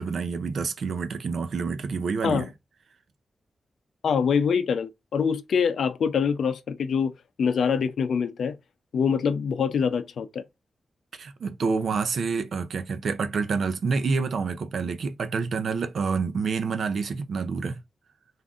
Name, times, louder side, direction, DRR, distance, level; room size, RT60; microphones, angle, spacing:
voice 1, 0.0-2.5 11.2-17.8, right 5 dB, 70° right, 0.5 m, -28 dB
voice 2, 4.0-7.1 7.4-8.6 8.9-10.4, left 6 dB, 90° left, 0.4 m, -24 dB
3.6 x 2.5 x 3.6 m
wide cardioid pair, 110°, 0 cm